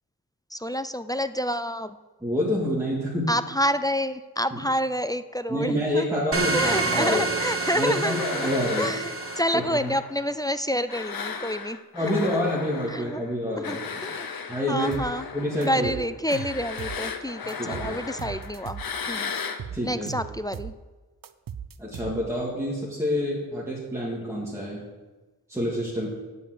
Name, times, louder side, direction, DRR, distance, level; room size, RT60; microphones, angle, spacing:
voice 1, 0.5-2.0 3.3-6.2 6.5-8.5 8.8-11.8 12.1-12.4 12.9-13.2 13.6-14.3 14.7-15.2 15.7-18.8 19.1-19.3 19.8-20.7, equal, 10° left, 11 dB, 0.3 m, -28 dB
voice 2, 2.2-3.3 4.5-4.6 5.5-7.3 7.7-9.0 9.5-9.9 11.9-14.0 14.5-15.0 15.3-15.9 17.6-18.0 19.7-20.1 21.8-24.8 25.5-26.1, left 1 dB, 5° right, -5 dB, 2.0 m, -27 dB
sound 1, 6.3-9.4, right 3 dB, 35° right, 1.1 m, -28 dB
sound 2, 6.6-10.5 10.9-19.6, left 6 dB, 65° left, 0.8 m, -36 dB
sound 3, 14.9-15.2 15.6-17.0 17.5-18.9 19.4-20.8 21.2-22.4, right 8 dB, 60° right, 0.5 m, -38 dB
9.2 x 5.4 x 7.7 m, 1.2 s
wide cardioid pair, 95°, 39 cm